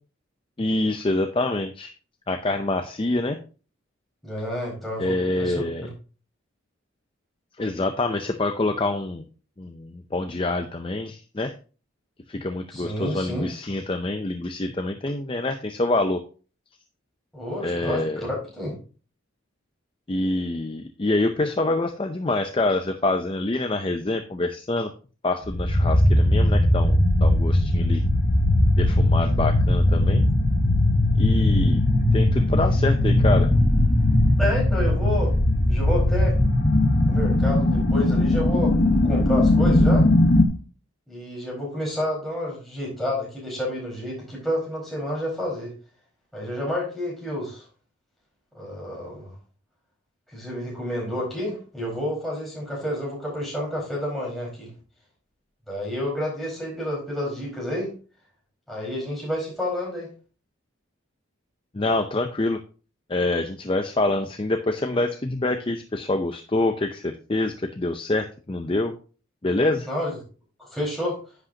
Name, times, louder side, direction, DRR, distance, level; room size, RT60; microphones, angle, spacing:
voice 1, 0.6-1.9 2.3-3.4 5.0-5.9 7.6-9.3 9.6-11.5 12.3-16.2 17.6-18.2 20.1-24.9 25.2-28.0 28.7-30.2 31.2-31.8 32.1-33.5 61.7-62.6 63.1-68.9 69.4-69.9, left 2 dB, 25° left, 6 dB, 0.5 m, -26 dB
voice 2, 4.2-5.9 12.7-13.5 17.3-18.7 34.4-35.3 35.7-36.4 37.1-40.1 41.1-45.7 46.3-47.6 48.5-49.3 50.3-54.7 55.7-57.9 58.7-60.1 69.9-70.2 70.6-71.2, left 1 dB, ahead, -5 dB, 4.6 m, -30 dB
sound 1, 25.4-40.4, left 1 dB, 40° left, 1.2 m, -19 dB
10.0 x 8.3 x 2.8 m, 0.38 s
head